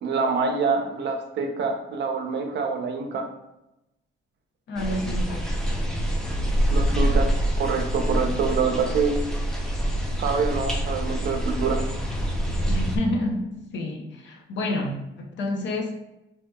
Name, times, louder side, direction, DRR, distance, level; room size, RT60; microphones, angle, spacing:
voice 1, 0.0-3.2 6.7-9.2 10.2-11.8, right 5 dB, 60° right, 4 dB, 0.6 m, -26 dB
voice 2, 4.7-5.5 12.7-15.9, left 1 dB, 65° left, 2 dB, 0.7 m, -29 dB
sound 1, 4.8-13.0, right 1 dB, 5° left, 0.5 m, -25 dB
3.2 x 2.8 x 2.2 m, 0.92 s
cardioid pair, 90°, 20 cm